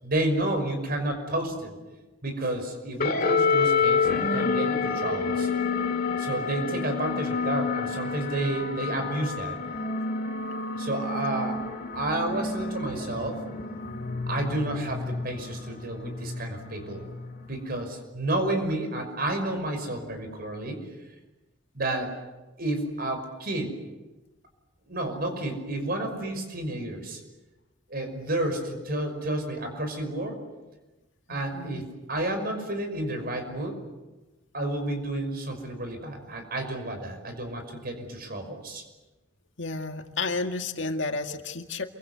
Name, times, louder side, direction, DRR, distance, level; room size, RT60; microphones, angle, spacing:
voice 1, 0.0-1.8 2.2-5.5 6.2-9.6 10.8-11.6 11.9-13.4 14.3-17.0 17.5-20.9 21.7-22.1 22.6-23.8 24.9-27.2 27.9-30.4 31.3-31.8 32.1-33.8 34.5-38.8, right 1 dB, 50° right, 6 dB, 5.7 m, -30 dB
sound 1, 3.0-17.8, left 4 dB, 50° left, 2.3 m, -29 dB
voice 2, 31.3-31.8 39.6-41.8, left 3 dB, 70° left, 5 dB, 2.0 m, -31 dB
27.5 x 24.0 x 8.1 m, 1.1 s
head